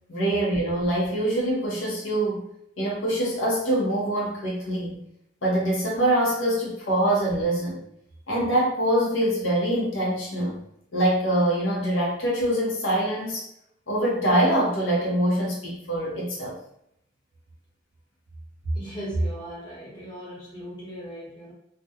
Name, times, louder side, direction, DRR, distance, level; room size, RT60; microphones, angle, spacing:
voice 1, 0.1-2.4 2.8-5.0 5.4-7.8 8.3-10.6 10.9-13.4 13.9-16.6, right 1 dB, 80° left, -4 dB, 0.7 m, -24 dB
voice 2, 18.6-21.5, right 1 dB, 20° left, -7 dB, 0.9 m, -33 dB
2.4 x 2.1 x 2.7 m, 0.75 s
head